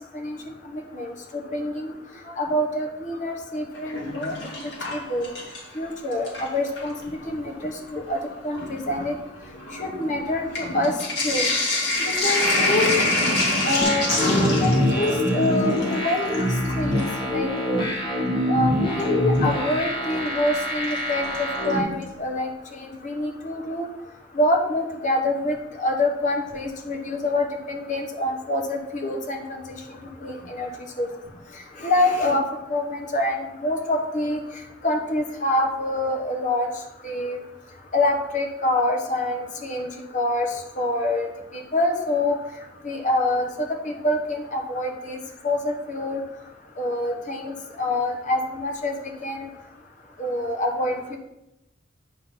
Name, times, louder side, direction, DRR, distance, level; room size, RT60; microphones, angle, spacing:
voice 1, 0.7-1.9 2.4-4.3 4.9-5.3 5.7-8.2 8.4-9.1 9.8-10.9 11.2-11.5 12.0-12.9 13.6-17.9 18.5-18.7 19.0-21.2 21.6-23.9 24.3-29.8 30.2-30.7 31.0-31.1 31.8-32.4 32.7-34.4 34.8-36.7 37.0-37.4 37.9-40.5 40.8-42.4 42.8-43.5 43.8-45.2 45.4-46.2 46.8-48.9 49.2-49.5 50.2-51.2, left 1 dB, 45° left, 2 dB, 1.2 m, -26 dB
Sink (filling or washing), 3.7-5.8 6.1-6.9 7.7-7.8 8.1-17.2 19.0-19.1 20.9-21.4 21.7-21.8 22.0-22.1, left 2 dB, 70° left, 2.2 m, -26 dB
sound 1, 13.8-21.8, left 1 dB, 25° left, 1.8 m, -25 dB
9.0 x 3.8 x 5.8 m, 0.89 s
head